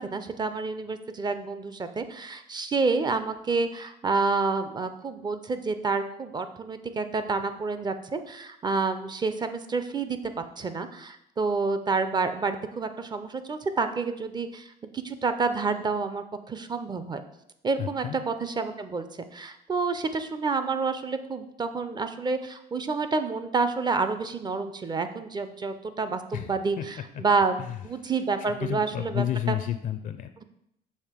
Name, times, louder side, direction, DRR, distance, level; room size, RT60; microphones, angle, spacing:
voice 1, 0.0-14.7 14.9-17.2 17.6-19.1 19.3-26.8 27.2-27.6 27.8-29.2, right 4 dB, 25° right, 10 dB, 0.5 m, -28 dB
voice 2, 17.8-18.2 26.3-26.9 27.1-27.2 27.6-28.1 28.4-30.4, left 11 dB, 50° left, 10 dB, 0.4 m, -32 dB
6.5 x 2.9 x 5.0 m, 0.77 s
cardioid pair, 110°, 17 cm